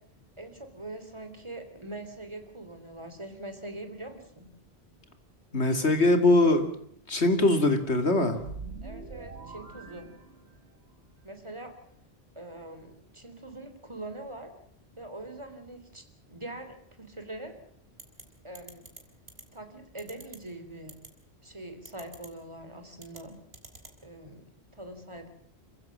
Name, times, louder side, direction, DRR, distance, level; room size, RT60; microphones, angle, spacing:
voice 1, 0.4-4.5 8.8-10.1 11.2-11.7 12.4-14.5 15.0-16.0 16.3-17.5 18.4-18.8 19.5-20.9 21.4-23.4 24.0-24.4 24.7-25.3, right 1 dB, 25° right, 7 dB, 3.6 m, -43 dB
voice 2, 5.5-6.7 7.1-8.4, left 2 dB, 85° left, 7 dB, 3.0 m, -22 dB
sound 1, 8.3-10.9, right 4 dB, 80° right, 2.5 m, -43 dB
sound 2, 18.0-18.2 18.5-19.0 19.3-19.4 20.0-20.4 20.9-21.1 21.8-22.3 23.0-23.2 23.5-23.9, right 2 dB, 65° right, 3.5 m, -46 dB
27.5 x 15.5 x 7.5 m, 0.68 s
omnidirectional pair, 1.1 m